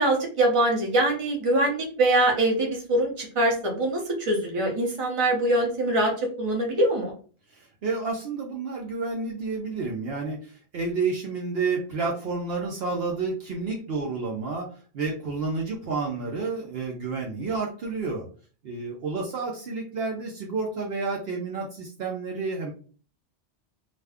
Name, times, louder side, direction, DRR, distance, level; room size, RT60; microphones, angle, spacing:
voice 1, 0.0-6.1 6.4-7.1, right 1 dB, 30° right, 0 dB, 0.8 m, -23 dB
voice 2, 7.5-14.7 14.9-18.3 18.6-22.7, right 4 dB, 65° right, -1 dB, 0.8 m, -30 dB
2.5 x 2.2 x 3.4 m, 0.40 s
omnidirectional pair, 1.2 m